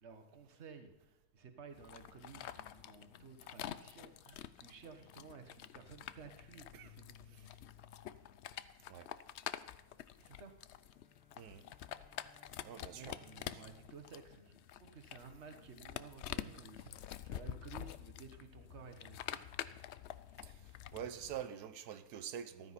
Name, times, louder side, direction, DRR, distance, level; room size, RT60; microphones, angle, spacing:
voice 1, 0.0-7.7 10.2-10.5 12.9-19.4, right 5 dB, 45° right, 1.5 m, -55 dB
sound 1, 1.7-21.5, left 11 dB, 70° left, 0.6 m, -48 dB
sound 2, 10.8-15.3, left 4 dB, 5° right, 2.3 m, -68 dB
voice 2, 12.6-13.2 13.5-13.6 20.4-22.7, right 9 dB, 80° right, 1.3 m, -46 dB
14.5 x 12.5 x 4.2 m
omnidirectional pair, 1.6 m